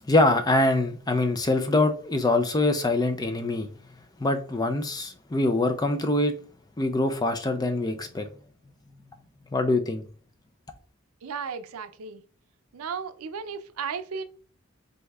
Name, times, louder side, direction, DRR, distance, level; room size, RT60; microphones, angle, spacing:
voice 1, 0.1-3.7 4.2-6.3 6.8-8.3 9.5-10.0, left 2 dB, 20° left, 0.4 m, -24 dB
voice 2, 11.2-12.2 12.7-14.2, right 6 dB, 85° right, 0.5 m, -34 dB
7.8 x 2.7 x 2.3 m
head